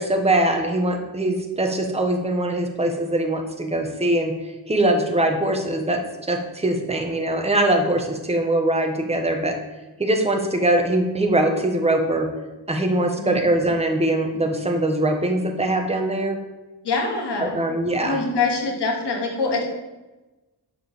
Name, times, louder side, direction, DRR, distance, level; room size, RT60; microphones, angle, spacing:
voice 1, 0.0-4.3 4.7-6.0 6.3-9.5 10.0-12.3 12.7-16.4 17.4-18.2, right 1 dB, 15° right, 3 dB, 1.3 m, -22 dB
voice 2, 16.8-17.5 18.0-19.6, left 3 dB, 80° left, 1 dB, 2.5 m, -24 dB
11.5 x 4.7 x 7.3 m, 1.1 s
wide cardioid pair, 170°, 40 cm